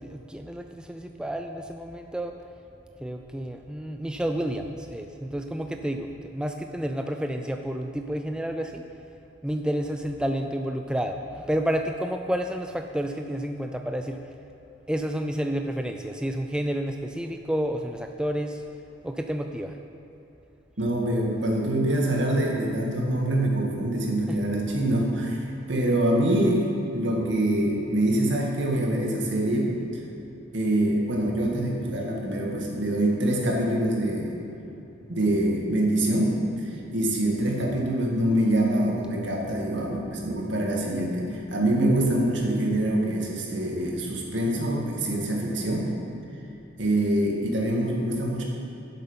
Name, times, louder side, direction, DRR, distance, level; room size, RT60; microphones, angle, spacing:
voice 1, 0.0-2.3 3.0-8.8 9.4-14.2 14.9-18.6 19.0-19.8 24.3-24.4, equal, 5° right, 5 dB, 0.3 m, -30 dB
voice 2, 20.8-29.7 30.5-34.4 35.1-45.9 46.8-48.4, right 1 dB, 75° right, -2 dB, 2.0 m, -25 dB
11.5 x 7.8 x 5.6 m, 2.9 s
head